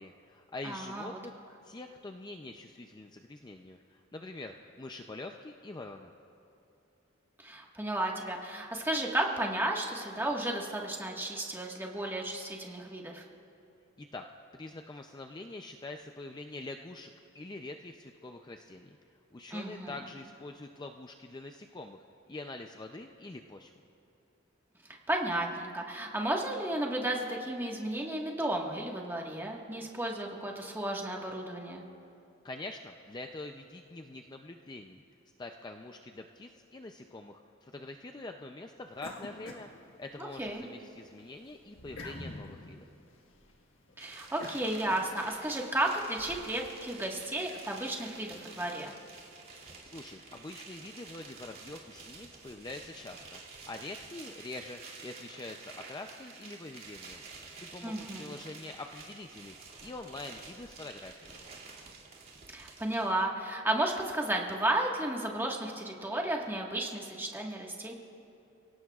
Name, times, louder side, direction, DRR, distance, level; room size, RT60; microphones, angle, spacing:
voice 1, 0.0-1.4 1.6-6.1 14.0-14.3 14.5-19.0 19.3-23.7 32.4-35.0 35.4-39.7 40.0-42.9 49.8-57.2 57.6-59.6 59.8-61.4, left 2 dB, 20° left, 4 dB, 0.4 m, -45 dB
voice 2, 0.6-1.1 7.4-13.2 19.5-19.9 25.1-31.8 40.2-40.6 44.0-48.9 57.8-58.3 62.5-67.9, right 1 dB, 10° right, 0 dB, 1.5 m, -33 dB
sound 1, 39.0-40.5 40.9-45.5, left 2 dB, 70° left, 1.5 m, -47 dB
sound 2, 44.0-63.1, right 4 dB, 50° right, 2.4 m, -50 dB
29.5 x 17.5 x 2.4 m, 2.8 s
head